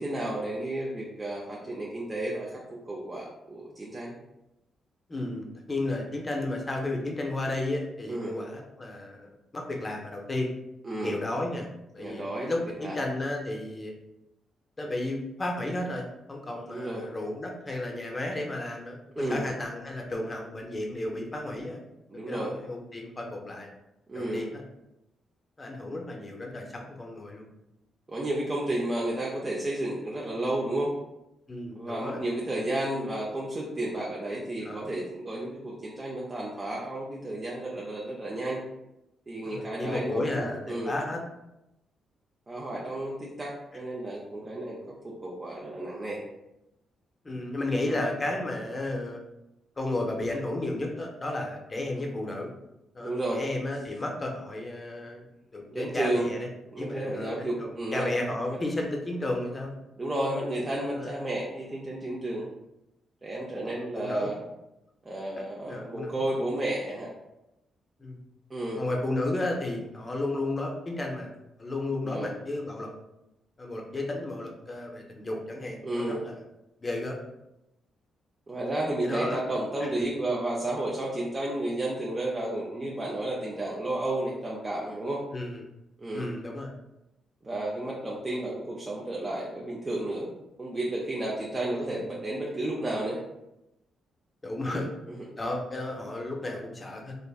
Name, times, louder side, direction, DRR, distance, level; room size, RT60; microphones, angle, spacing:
voice 1, 0.0-2.6 2.9-4.1 8.1-8.4 10.8-11.2 12.0-13.0 16.7-17.1 19.2-19.5 22.1-22.5 24.1-24.5 28.1-30.9 31.7-38.6 39.3-40.9 42.5-44.8 45.0-46.2 47.9-48.0 51.9-52.1 53.0-53.4 55.7-56.3 56.7-58.1 58.5-58.6 60.0-62.5 63.2-64.4 65.0-67.1 68.5-68.8 72.0-72.3 75.8-76.3 78.5-85.2 86.0-86.3 87.4-90.3 90.6-93.2 94.6-94.9, right 1 dB, 25° right, -4 dB, 0.5 m, -32 dB
voice 2, 5.1-10.5 11.0-11.7 11.9-13.9 14.8-21.8 22.3-23.7 24.1-24.6 25.6-27.5 31.5-32.2 34.6-34.9 39.4-41.2 47.2-49.2 49.8-52.5 52.9-55.3 55.5-56.5 56.8-59.7 60.8-61.1 63.6-64.3 65.7-66.4 68.0-68.2 68.8-71.3 71.6-72.9 73.6-76.4 76.8-77.2 78.6-78.7 79.0-79.4 79.8-79.9 85.3-85.6 86.1-86.7 91.7-92.0 94.4-94.9 95.4-97.2, left 2 dB, 25° left, 1 dB, 0.6 m, -33 dB
3.3 x 2.5 x 2.3 m, 0.90 s
cardioid pair, 90°, 0 cm